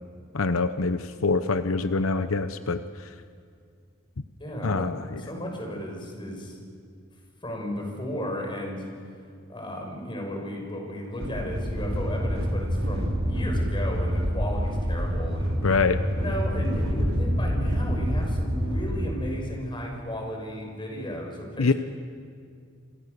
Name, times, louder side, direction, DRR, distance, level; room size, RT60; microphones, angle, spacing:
voice 1, 0.3-2.8 4.6-5.0 15.6-16.0 21.6-21.7, left 4 dB, 90° left, 10 dB, 0.9 m, -24 dB
voice 2, 4.4-4.9 5.2-6.6 7.4-8.8 9.5-15.6 16.1-21.7, equal, 25° left, 1 dB, 6.3 m, -34 dB
sound 1, 11.2-19.1, equal, 85° right, 5.6 m, -27 dB
27.5 x 26.0 x 6.8 m, 2.2 s
head